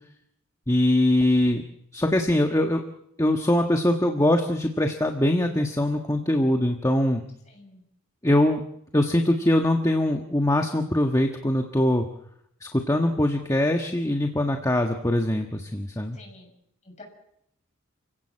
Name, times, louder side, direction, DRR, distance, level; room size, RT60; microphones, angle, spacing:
voice 1, 0.7-1.6 1.9-2.8 3.2-7.2 8.2-8.6 8.9-12.0 12.6-16.2, left 1 dB, 15° left, 3 dB, 1.4 m, -22 dB
voice 2, 7.5-7.8 16.1-16.5 16.8-17.0, left 2 dB, 35° left, 1 dB, 7.2 m, -48 dB
29.5 x 16.5 x 7.6 m, 0.76 s
head